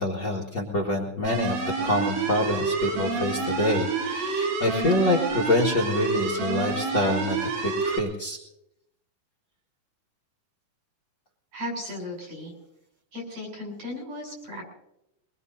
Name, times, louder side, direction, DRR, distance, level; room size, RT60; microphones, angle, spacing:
voice 1, 0.0-1.6 1.8-8.4, left 1 dB, 45° left, -3 dB, 1.8 m, -26 dB
sound 1, 1.2-8.0, right 4 dB, 80° right, 3.6 m, -28 dB
voice 2, 11.5-12.5 13.1-14.6, left 1 dB, 55° right, 0 dB, 7.9 m, -36 dB
23.0 x 21.5 x 2.7 m, 0.81 s
omnidirectional pair, 3.8 m